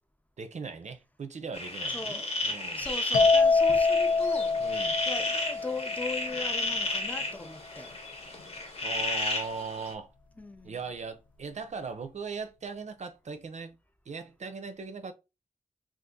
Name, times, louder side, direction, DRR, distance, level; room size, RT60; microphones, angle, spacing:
voice 1, 0.4-2.9 4.6-5.0 8.8-10.1 10.6-13.8 14.1-15.1, right 4 dB, 55° right, 0.5 m, -39 dB
sound 1, 1.5-9.9, left 2 dB, 50° left, 1.0 m, -33 dB
voice 2, 1.9-7.9 10.4-10.8, left 2 dB, 10° left, 0.4 m, -39 dB
sound 2, 3.1-6.8, left 4 dB, 80° left, 0.4 m, -25 dB
2.6 x 2.4 x 3.6 m
wide cardioid pair, 70°, 14 cm